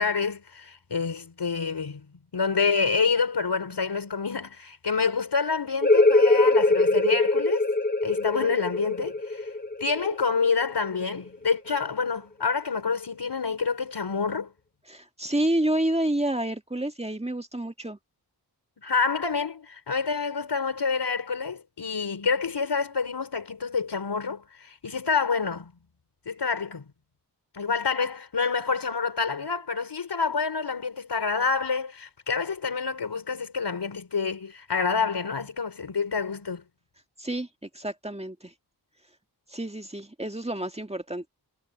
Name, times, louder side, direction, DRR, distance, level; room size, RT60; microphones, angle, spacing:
voice 1, 0.0-2.1 2.3-7.7 8.0-9.5 9.8-14.5 18.8-25.7 26.3-26.8 27.5-36.6, left 5 dB, 75° left, 4.5 m, -27 dB
sound 1, 5.8-11.2, left 2 dB, 20° left, 1.3 m, -22 dB
voice 2, 14.9-18.0 37.2-38.5 39.5-41.3, right 1 dB, 15° right, 2.0 m, -29 dB
cardioid pair, 55°, 41 cm